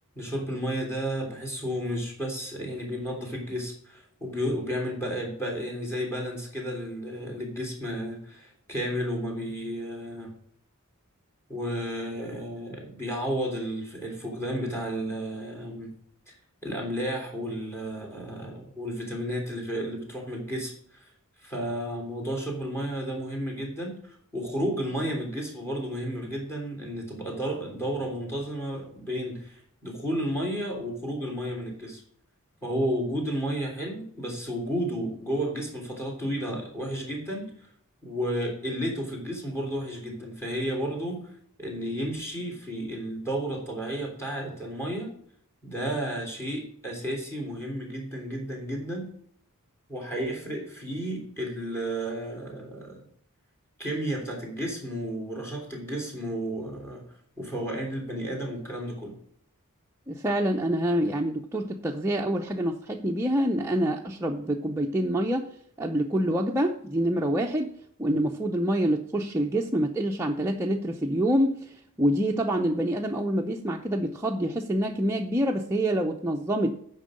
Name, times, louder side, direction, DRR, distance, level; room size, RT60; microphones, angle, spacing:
voice 1, 0.2-10.3 11.5-15.9 16.3-16.4 16.6-21.1 21.4-32.0 32.6-37.5 38.0-41.3 41.6-45.1 45.6-49.1 49.9-53.0 53.8-57.0 57.4-59.2, equal, 10° left, 1 dB, 3.3 m, -32 dB
voice 2, 60.1-65.5 65.8-67.7 68.0-76.8, right 1 dB, 10° right, 0 dB, 0.6 m, -26 dB
9.0 x 5.4 x 6.5 m, 0.64 s
head